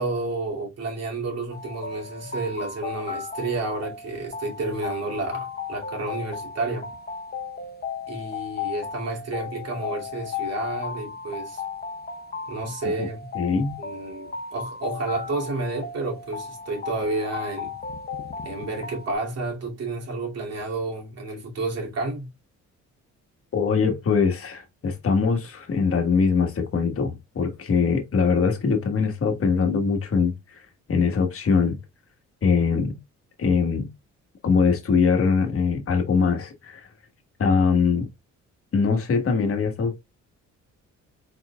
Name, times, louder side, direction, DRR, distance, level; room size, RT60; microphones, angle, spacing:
voice 1, 0.0-6.9 8.1-11.6 12.5-13.3 13.8-17.7 18.4-22.3, right 3 dB, 55° right, 2.5 m, -30 dB
sound 1, 1.5-19.2, left 6 dB, 30° left, 0.9 m, -35 dB
voice 2, 13.3-13.8 23.5-31.8 32.4-33.0 33.4-33.9 34.4-36.9 37.4-38.1 38.7-40.0, left 5 dB, 45° left, 1.5 m, -22 dB
4.7 x 4.4 x 2.3 m
cardioid pair, 90°, 30 cm